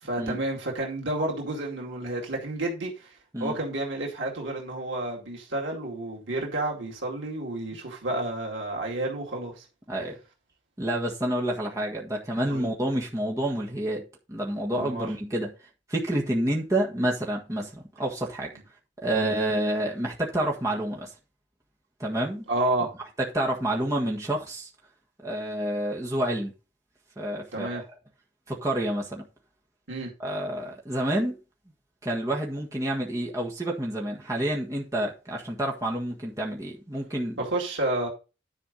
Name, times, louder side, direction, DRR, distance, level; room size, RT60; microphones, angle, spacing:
voice 1, 0.0-3.1 3.4-9.7 12.5-12.7 14.7-15.1 19.1-19.3 22.5-22.9 27.5-27.8 29.9-30.1 37.4-38.1, right 2 dB, 90° right, 2.3 m, -30 dB
voice 2, 9.9-10.2 10.8-15.5 15.9-18.5 19.0-21.1 22.0-22.5 23.3-24.7 25.2-26.5 27.2-27.8 28.5-29.2 30.2-31.4 32.0-37.4, right 1 dB, 15° right, 1.6 m, -28 dB
10.5 x 5.0 x 5.2 m
head